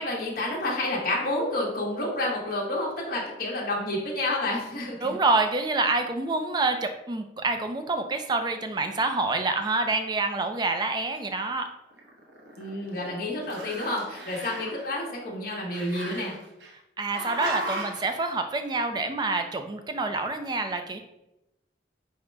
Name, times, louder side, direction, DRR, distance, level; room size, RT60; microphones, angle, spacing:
voice 1, 0.0-5.2 12.6-16.4, left 1 dB, 50° left, -3 dB, 0.9 m, -29 dB
voice 2, 5.0-11.7 17.0-21.0, right 3 dB, 25° right, 7 dB, 0.4 m, -27 dB
Growling, 11.9-13.1 13.4-14.9 15.7-16.7 17.1-18.1, right 1 dB, 75° right, 0.8 m, -36 dB
5.0 x 2.1 x 4.4 m, 0.90 s
head